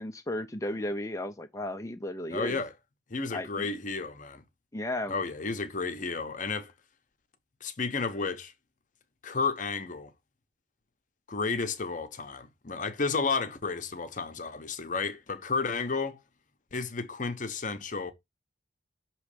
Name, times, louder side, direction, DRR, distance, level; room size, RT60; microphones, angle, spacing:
voice 1, 0.0-2.6 3.3-3.7 4.7-5.1, left 1 dB, 15° left, 0.5 m, -34 dB
voice 2, 2.3-2.7 3.1-4.4 5.1-6.7 7.6-8.5 9.2-10.1 11.3-16.2 16.7-18.1, left 4 dB, 45° left, 0.8 m, -32 dB
6.4 x 3.0 x 4.9 m
head